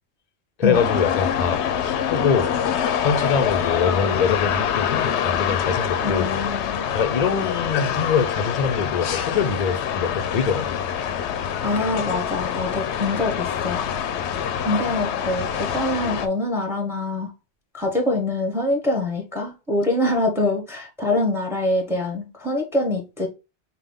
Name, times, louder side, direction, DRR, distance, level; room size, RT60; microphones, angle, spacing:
voice 1, 0.6-2.5 3.0-6.3 6.9-10.8, left 6 dB, 45° left, 0.6 m, -24 dB
sound 1, 0.7-16.3, left 8 dB, 85° left, 0.9 m, -25 dB
voice 2, 6.0-6.8 11.6-13.8 14.6-17.3 17.7-23.3, left 2 dB, ahead, 0.9 m, -24 dB
5.5 x 2.2 x 3.5 m
omnidirectional pair, 1.1 m